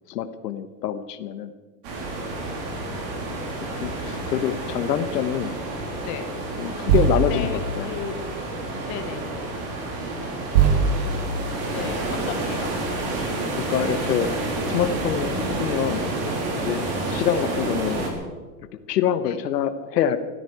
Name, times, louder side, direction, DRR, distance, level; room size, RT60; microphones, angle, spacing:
voice 1, 0.1-1.5 2.8-3.0 3.6-5.5 6.6-7.9 13.2-13.3 13.6-14.3 14.7-16.0 16.6-18.0 18.9-20.2, left 9 dB, 75° left, 10 dB, 1.3 m, -26 dB
sound 1, 1.8-18.1, right 2 dB, 35° right, 3.2 m, -29 dB
sound 2, 3.2-3.4 5.1-5.4 6.9-8.5 9.7-9.8 10.5-12.2 13.8-13.9 14.2-14.8 15.5-16.0 16.8-17.0, right 6 dB, 70° right, 3.0 m, -24 dB
voice 2, 7.1-8.4 8.9-9.3 11.7-12.7 19.2-19.4, left 7 dB, 25° left, 8 dB, 1.1 m, -34 dB
20.0 x 14.0 x 4.8 m, 1.4 s
supercardioid pair, 180°, 48 cm